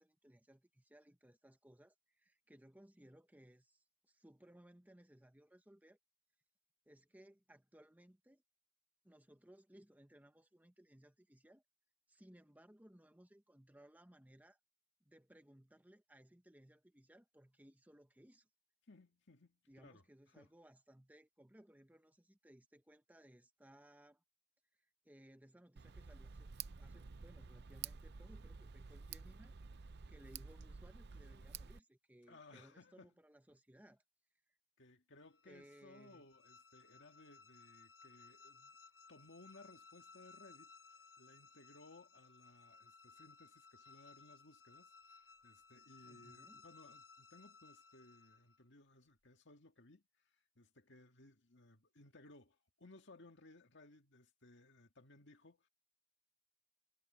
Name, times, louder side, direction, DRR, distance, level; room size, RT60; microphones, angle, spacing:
voice 1, 0.0-6.0 6.9-8.4 9.0-11.6 12.1-14.6 15.0-18.5 19.7-24.2 24.8-26.5 26.8-29.5 30.1-34.0 34.5-34.6 35.4-36.2 46.0-46.6, right 1 dB, 10° right, 1.0 m, -63 dB
voice 2, 18.9-20.5 32.3-33.1 34.8-38.7 39.1-40.7 41.2-55.7, left 2 dB, 60° left, 2.1 m, -62 dB
Tick, 25.8-31.8, right 6 dB, 55° right, 0.6 m, -51 dB
sound 1, 35.2-48.6, left 4 dB, 75° left, 3.1 m, -62 dB
head